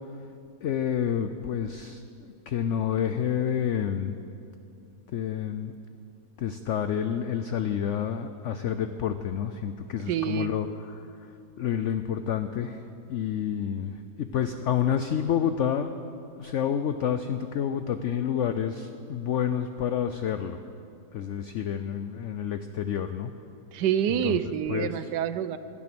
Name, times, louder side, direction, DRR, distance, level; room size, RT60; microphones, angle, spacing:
voice 1, 0.6-2.0 2.5-4.2 5.1-5.7 6.4-11.0 11.6-12.8 13.1-13.9 14.2-15.9 16.4-20.6 21.1-23.3 24.1-24.4 24.7-25.1, left 9 dB, 85° left, 10 dB, 0.6 m, -29 dB
voice 2, 10.1-10.5 23.7-25.6, right 9 dB, 80° right, 13 dB, 1.2 m, -27 dB
16.0 x 11.0 x 6.0 m, 2.6 s
omnidirectional pair, 1.8 m